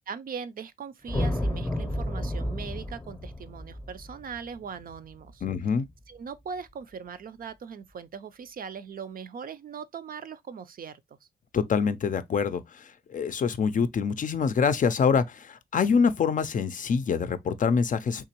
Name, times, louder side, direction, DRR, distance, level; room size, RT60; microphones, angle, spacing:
voice 1, 0.1-5.4 6.1-11.0, right 6 dB, 55° right, 0.4 m, -40 dB
sound 1, 1.1-5.5, left 1 dB, 15° left, 0.7 m, -31 dB
voice 2, 5.4-5.9 11.5-18.2, left 6 dB, 50° left, 0.4 m, -25 dB
3.6 x 2.9 x 2.8 m
cardioid pair, 95°, 17 cm